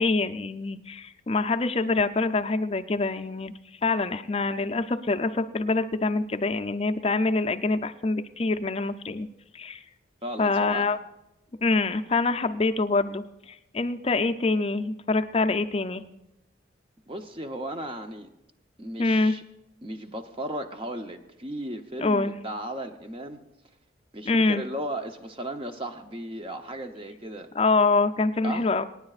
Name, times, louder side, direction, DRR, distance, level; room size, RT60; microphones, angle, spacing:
voice 1, 0.0-3.5 3.8-9.3 9.5-9.8 10.4-11.0 11.6-16.0 19.0-19.4 22.0-22.3 24.3-24.6 27.6-28.8, left 3 dB, 30° left, 8 dB, 0.4 m, -25 dB
voice 2, 10.2-10.9 17.1-18.3 18.8-19.4 19.8-23.4 24.1-27.5 28.4-28.7, right 1 dB, 25° right, 6 dB, 0.7 m, -35 dB
26.0 x 9.5 x 2.4 m, 0.91 s
head